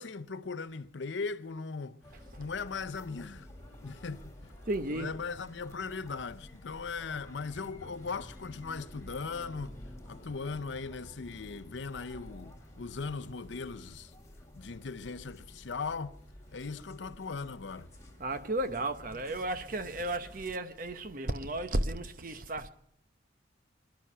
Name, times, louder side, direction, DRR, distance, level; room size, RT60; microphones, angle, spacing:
voice 1, 0.0-2.0 2.4-3.5 3.8-4.3 4.9-9.8 10.1-14.1 14.5-16.2 16.5-17.9, left 4 dB, 75° left, 0.6 m, -38 dB
sound 1, 2.0-20.4, left 1 dB, 15° left, 2.1 m, -51 dB
voice 2, 2.1-2.4 4.7-5.2 18.2-22.7, right 1 dB, 45° right, 0.9 m, -34 dB
22.0 x 11.5 x 5.6 m
head